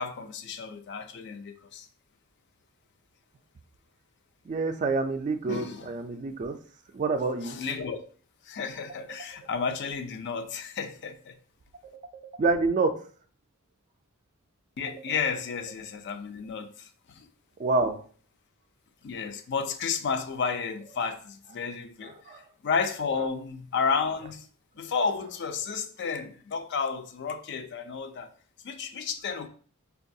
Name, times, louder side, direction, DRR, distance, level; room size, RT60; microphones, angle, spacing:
voice 1, 0.0-1.9 5.5-5.9 7.4-8.0 8.5-11.3 14.8-17.3 19.0-24.5 24.8-28.3 28.6-29.5, left 5 dB, 55° left, 0.4 m, -32 dB
voice 2, 4.5-6.6 6.9-7.6 12.4-13.0 17.6-18.0 22.0-22.4, right 3 dB, 35° right, 0.3 m, -27 dB
5.2 x 2.3 x 2.6 m
head